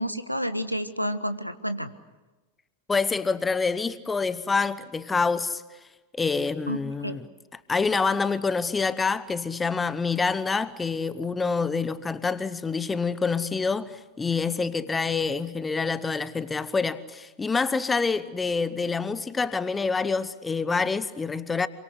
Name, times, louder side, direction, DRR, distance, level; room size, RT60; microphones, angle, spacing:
voice 1, 0.0-1.9 6.7-6.8 7.0-7.2, equal, 90° left, 1.4 m, -29 dB
voice 2, 2.9-5.6 6.2-7.3 7.5-21.7, left 4 dB, 15° left, 1.1 m, -27 dB
27.5 x 24.5 x 8.2 m
figure-of-eight pair, 90°, 0 cm